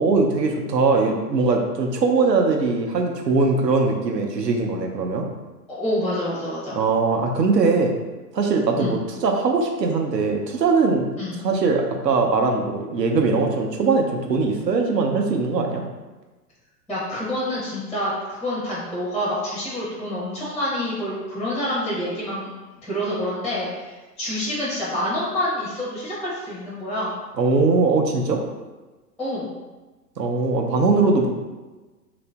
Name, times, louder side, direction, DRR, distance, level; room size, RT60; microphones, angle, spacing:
voice 1, 0.0-5.2 6.7-7.9 8.3-11.1 11.4-15.8 27.4-28.4 30.2-31.3, right 4 dB, 85° right, 2 dB, 0.7 m, -21 dB
voice 2, 5.7-6.8 8.8-9.0 11.2-11.4 16.9-22.5 22.8-27.2 29.2-29.5, left 1 dB, ahead, -7 dB, 0.4 m, -27 dB
2.9 x 2.5 x 3.3 m, 1.2 s
figure-of-eight pair, 105°, 49 cm